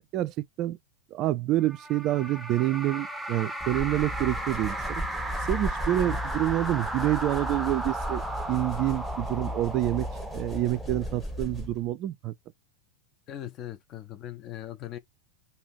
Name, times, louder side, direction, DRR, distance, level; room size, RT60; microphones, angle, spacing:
voice 1, 0.1-0.8 1.1-5.0 5.5-8.2 8.5-10.1 10.3-12.3, right 15 dB, 35° right, 0.4 m, -27 dB
sound 1, 1.7-11.3, right 1 dB, 5° right, 0.7 m, -35 dB
sound 2, 3.6-11.9, equal, 15° left, 1.5 m, -36 dB
voice 2, 13.3-15.0, left 12 dB, 35° left, 0.7 m, -40 dB
4.9 x 2.8 x 3.1 m
figure-of-eight pair, 90°, 0 cm